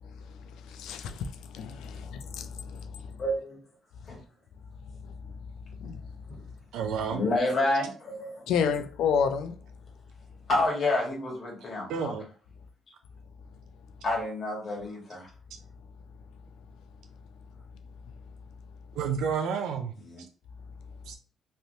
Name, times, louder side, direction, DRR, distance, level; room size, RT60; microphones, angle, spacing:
voice 1, 0.0-3.2 4.8-5.3 5.7-6.0 8.5-9.6, left 6 dB, 85° left, 0.4 m, -31 dB
voice 2, 3.2-3.6 4.1-4.2 6.3-6.4 7.1-8.4 10.5-12.1 14.0-15.3 20.0-20.2, left 2 dB, 50° left, 1.5 m, -29 dB
voice 3, 6.7-7.2 11.9-12.2 18.9-19.9 21.1-21.2, right 6 dB, 90° right, 0.4 m, -30 dB
3.3 x 2.5 x 2.7 m
cardioid pair, 90°, 0 cm